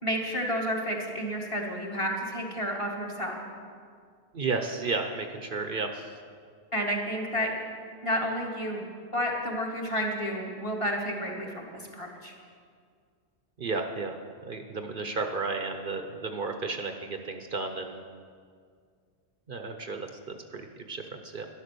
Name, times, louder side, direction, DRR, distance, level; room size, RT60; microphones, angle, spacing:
voice 1, 0.0-3.4 6.7-7.5 8.0-8.8 9.1-12.3, equal, 30° left, -1 dB, 2.0 m, -31 dB
voice 2, 4.3-6.1 13.6-14.2 14.5-18.0 19.5-21.4, right 4 dB, 55° right, 5 dB, 0.9 m, -33 dB
12.0 x 11.5 x 6.8 m, 2.1 s
omnidirectional pair, 1.1 m